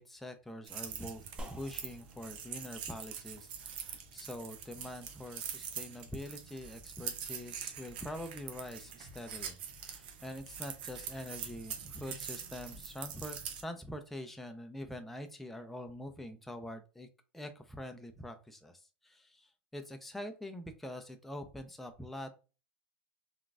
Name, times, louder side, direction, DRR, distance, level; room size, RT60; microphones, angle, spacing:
voice 1, 0.0-17.1 17.3-22.3, left 1 dB, 5° left, 5 dB, 0.4 m, -45 dB
sound 1, 0.7-13.6, right 7 dB, 75° right, 0.6 m, -44 dB
sound 2, 1.4-10.1, equal, 20° right, 0.9 m, -55 dB
3.8 x 2.4 x 2.3 m, 0.33 s
hypercardioid pair, 100°, 5 cm